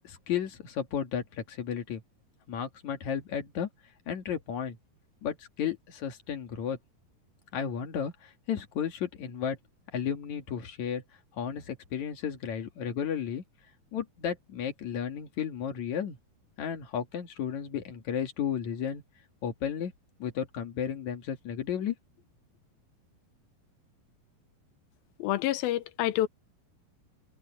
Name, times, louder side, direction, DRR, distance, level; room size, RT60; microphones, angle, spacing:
voice 1, 0.0-2.0 2.5-3.7 4.1-4.8 5.2-6.8 7.5-9.6 9.9-11.0 11.3-13.4 13.9-16.2 16.6-19.0 19.4-19.9 20.2-21.9, left 8 dB, 55° left, 3.1 m, -33 dB
voice 2, 25.2-26.3, left 14 dB, 80° left, 2.5 m, -28 dB
omnidirectional pair, 4.4 m